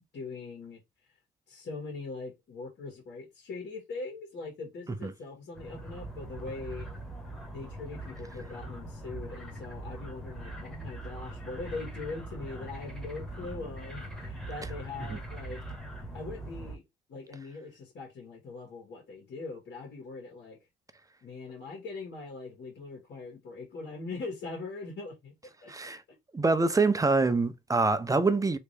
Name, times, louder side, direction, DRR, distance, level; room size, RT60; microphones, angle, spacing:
voice 1, 0.1-1.1 1.5-6.9 7.5-15.6 16.1-16.8 17.1-20.6 21.2-25.9, left 3 dB, 65° left, 1.9 m, -41 dB
sound 1, 5.5-16.8, right 1 dB, ahead, 1.1 m, -41 dB
voice 2, 25.7-26.0 26.3-28.6, right 3 dB, 15° right, 0.5 m, -25 dB
3.3 x 2.9 x 3.3 m
cardioid pair, 90°, 20 cm